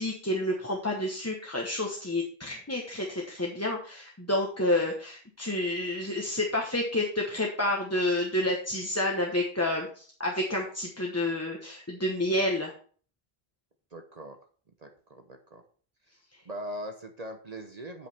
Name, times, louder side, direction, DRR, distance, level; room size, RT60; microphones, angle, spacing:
voice 1, 0.0-12.7, left 1 dB, 15° left, -1 dB, 1.0 m, -29 dB
voice 2, 13.9-14.4 14.8-15.6 16.5-18.1, equal, 40° right, 5 dB, 0.9 m, -40 dB
8.1 x 8.1 x 3.4 m, 0.43 s
omnidirectional pair, 1.1 m